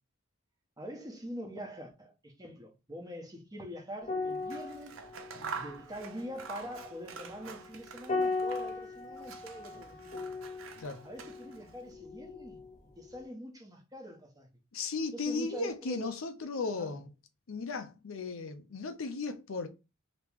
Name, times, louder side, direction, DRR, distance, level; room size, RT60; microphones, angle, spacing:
voice 1, 0.8-5.0 5.5-10.4 11.0-12.6 13.0-14.5 15.1-16.2 16.7-16.9, equal, 20° right, 0.9 m, -44 dB
sound 1, 4.0-12.7 13.0-13.3, left 3 dB, 35° left, 0.5 m, -38 dB
Scissors, 4.3-8.9 9.2-11.7, right 5 dB, 70° right, 0.5 m, -46 dB
voice 2, 14.7-17.1 17.5-19.7, left 4 dB, 80° left, 0.6 m, -36 dB
3.0 x 2.9 x 3.4 m
head